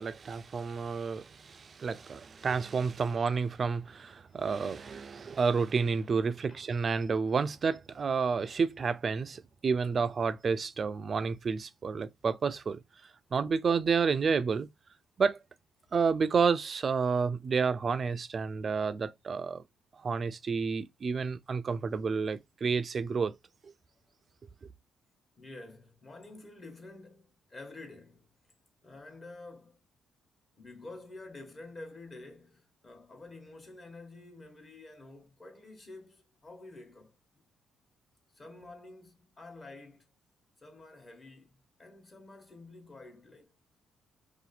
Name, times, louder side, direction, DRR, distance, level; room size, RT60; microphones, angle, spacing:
voice 1, 0.0-12.8 13.3-14.7 15.2-15.4 15.9-19.6 20.0-23.4 23.6-23.7, right 5 dB, 45° right, 0.3 m, -30 dB
voice 2, 25.4-28.3 28.8-29.8 30.6-37.2 38.3-40.1 40.6-43.6, left 2 dB, 35° left, 1.1 m, -49 dB
2.8 x 2.4 x 4.0 m
cardioid pair, 90°, 0 cm